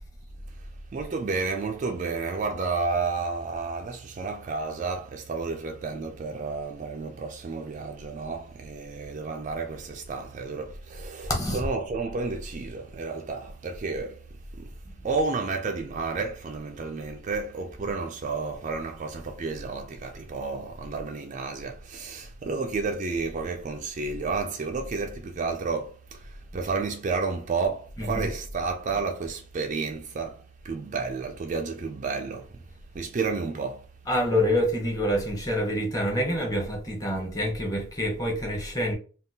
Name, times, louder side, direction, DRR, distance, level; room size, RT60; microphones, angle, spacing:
voice 1, 0.5-14.3 14.5-14.8 15.0-32.6 32.9-33.9, right 4 dB, 35° right, 0.3 m, -31 dB
voice 2, 11.3-11.7 28.0-28.3 34.0-38.9, equal, 15° left, 0.8 m, -27 dB
3.5 x 2.3 x 2.7 m
head